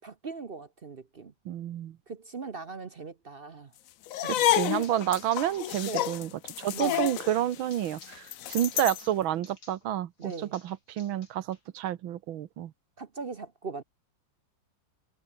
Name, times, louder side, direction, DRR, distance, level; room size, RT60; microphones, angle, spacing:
voice 1, 0.0-1.3 2.1-3.7 5.8-6.1 6.7-7.1 10.2-10.5 13.0-13.8, right 4 dB, 40° right, 0.8 m, -40 dB
voice 2, 1.5-2.0 4.2-6.3 6.6-12.7, right 12 dB, 85° right, 1.8 m, -30 dB
sound 1, 4.1-9.1, left 13 dB, 80° left, 0.7 m, -30 dB
sound 2, 4.5-9.9 10.2-11.6, left 3 dB, 50° left, 5.0 m, -55 dB
omnidirectional pair, 2.1 m